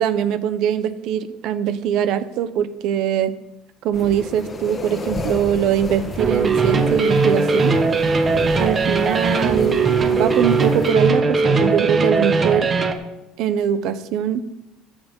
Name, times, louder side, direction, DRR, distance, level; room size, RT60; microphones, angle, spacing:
voice 1, 0.0-3.3 3.8-7.7 8.6-12.7 13.4-14.4, right 9 dB, 60° right, 13 dB, 0.9 m, -22 dB
sound 1, 3.9-10.9, left 3 dB, 25° left, 1.3 m, -32 dB
sound 2, 6.2-12.9, right 4 dB, 25° right, 1.1 m, -19 dB
13.5 x 7.3 x 5.3 m, 0.95 s
cardioid pair, 140°, 0 cm